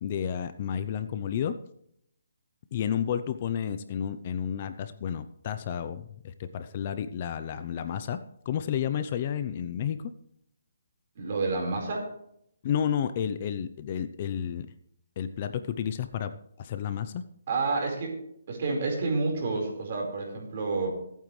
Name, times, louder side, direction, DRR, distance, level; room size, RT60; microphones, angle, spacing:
voice 1, 0.0-1.5 2.7-8.2 8.5-10.1 12.6-14.7 15.2-16.3 16.6-17.2, left 8 dB, 30° left, 11 dB, 0.6 m, -31 dB
voice 2, 11.2-12.1 17.5-18.1 18.5-20.9, right 3 dB, 40° right, 1 dB, 4.5 m, -29 dB
22.0 x 9.1 x 3.2 m, 0.71 s
hypercardioid pair, 170°, 0 cm